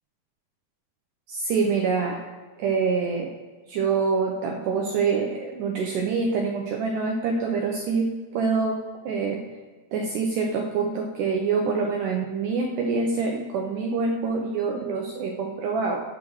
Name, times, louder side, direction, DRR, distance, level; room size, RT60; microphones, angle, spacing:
voice 1, 1.3-2.2 2.6-3.3 3.7-8.8 9.1-9.4 9.9-16.0, right 4 dB, 80° right, 1 dB, 1.8 m, -25 dB
9.5 x 3.6 x 6.2 m, 1.4 s
omnidirectional pair, 4.4 m